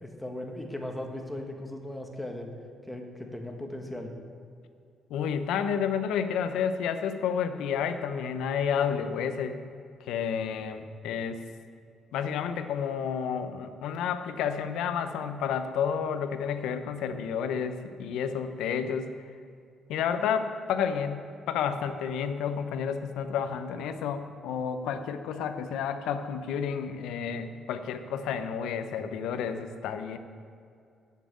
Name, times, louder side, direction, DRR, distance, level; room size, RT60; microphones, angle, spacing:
voice 1, 0.0-2.5 2.9-4.1, left 1 dB, 10° left, 2 dB, 1.4 m, -37 dB
voice 2, 5.1-9.6 10.1-11.4 12.1-19.1 19.9-30.2, left 7 dB, 90° left, 9 dB, 0.7 m, -30 dB
7.5 x 7.4 x 8.4 m, 2.4 s
cardioid pair, 90°, 0 cm